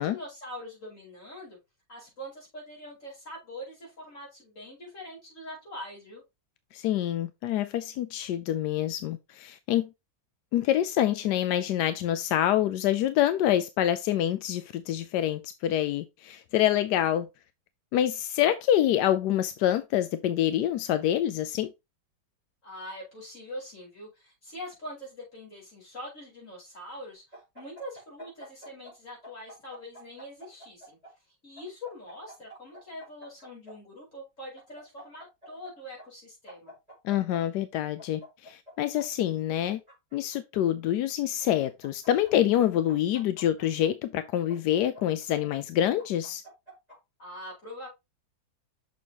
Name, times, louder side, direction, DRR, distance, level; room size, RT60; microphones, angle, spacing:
voice 1, 0.0-1.6 1.9-6.2 22.6-31.0 31.4-36.7 47.2-47.9, left 1 dB, 40° left, 5.1 m, -43 dB
voice 2, 6.7-9.9 10.5-17.3 17.9-21.7 37.0-39.8 40.1-46.4, left 11 dB, 75° left, 1.0 m, -26 dB
sound 1, 27.3-28.9 29.2-31.1 31.6-33.7 34.6-35.7 36.0-36.1 36.5-37.4 38.0-39.0 39.6-40.6 41.4-42.3 42.6-43.9 44.5-45.5 46.0-47.0, equal, 20° right, 4.1 m, -48 dB
6.9 x 6.3 x 2.9 m
omnidirectional pair, 2.1 m